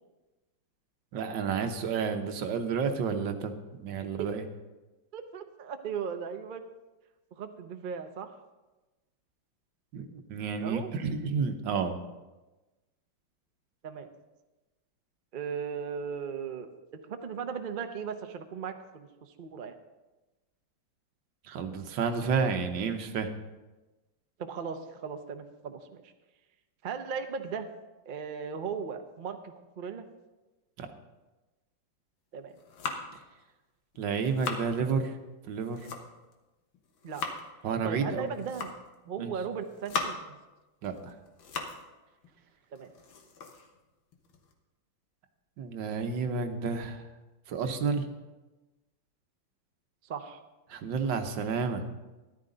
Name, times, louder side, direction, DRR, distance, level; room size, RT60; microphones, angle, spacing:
voice 1, 1.1-4.4 9.9-12.0 21.4-23.3 30.8-30.9 34.0-35.2 35.5-35.9 37.6-38.3 39.2-39.3 40.8-41.1 45.6-47.0 47.5-48.0 50.7-51.8, right 5 dB, 70° right, 6 dB, 1.6 m, -31 dB
voice 2, 4.0-4.3 5.1-6.6 7.3-8.4 10.6-10.9 13.8-14.1 15.3-16.7 16.9-19.7 24.4-26.1 26.8-27.7 28.1-30.1 32.3-32.6 37.0-37.2 37.8-38.7 39.1-40.4 42.7-42.9 50.0-50.4, right 6 dB, 85° right, 7 dB, 0.4 m, -37 dB
sound 1, 32.4-33.3 33.9-34.7 35.5-36.3 36.7-37.5 38.3-38.9 39.5-40.4 40.8-41.9 42.2-42.3 42.8-44.5, left 4 dB, 85° left, 2.0 m, -39 dB
13.5 x 12.0 x 3.9 m, 1.1 s
omnidirectional pair, 2.2 m